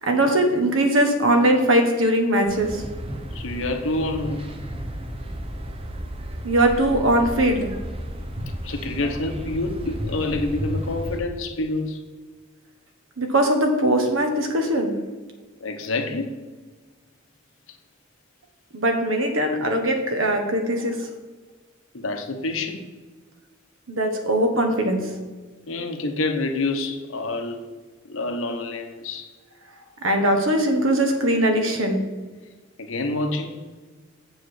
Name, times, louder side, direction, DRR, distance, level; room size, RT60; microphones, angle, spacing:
voice 1, 0.0-2.8 6.4-7.7 13.2-14.9 18.7-21.1 23.9-25.0 30.0-32.0, right 1 dB, 80° right, 4 dB, 1.3 m, -20 dB
sound 1, 2.5-11.2, equal, 30° right, 0.8 m, -33 dB
voice 2, 3.3-4.4 8.6-12.0 15.6-16.5 21.9-22.9 25.7-27.6 28.0-29.3 32.8-33.6, left 2 dB, 80° left, 5 dB, 1.0 m, -27 dB
7.8 x 4.9 x 6.4 m, 1.3 s
head